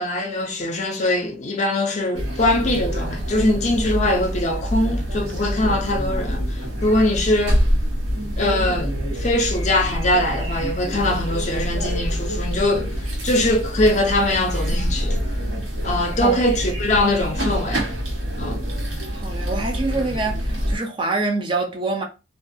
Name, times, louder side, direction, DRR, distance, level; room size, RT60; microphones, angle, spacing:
voice 1, 0.0-7.6 8.4-12.9 13.2-15.2 15.8-17.8 18.4-18.6, left 1 dB, 40° left, 0.5 m, -22 dB
sound 1, 2.1-20.8, equal, 75° right, 1.1 m, -26 dB
voice 2, 19.1-22.0, right 3 dB, 25° right, 0.4 m, -25 dB
2.4 x 2.2 x 2.6 m
head